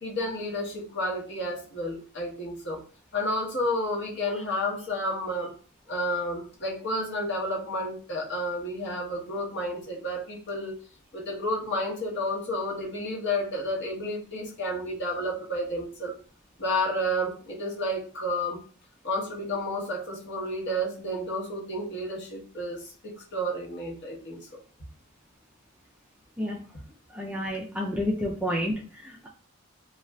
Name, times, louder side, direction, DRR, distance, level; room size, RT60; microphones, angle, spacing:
voice 1, 0.0-2.8 3.1-5.5 5.9-10.7 11.1-16.1 16.6-18.6 19.0-24.4, left 1 dB, 50° left, -3 dB, 0.9 m, -31 dB
voice 2, 27.1-29.3, equal, 5° right, -2 dB, 0.3 m, -30 dB
2.4 x 2.3 x 3.1 m, 0.38 s
head